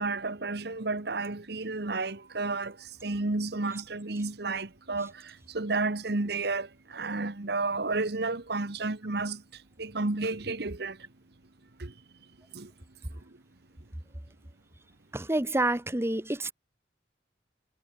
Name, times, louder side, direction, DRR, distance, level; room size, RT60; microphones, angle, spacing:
voice 1, 0.0-2.7 3.0-9.4 9.8-11.0 11.8-11.9 12.5-12.7, right 3 dB, 65° right, 1.5 m, -31 dB
voice 2, 15.1-16.5, right 1 dB, 15° right, 1.1 m, -28 dB
head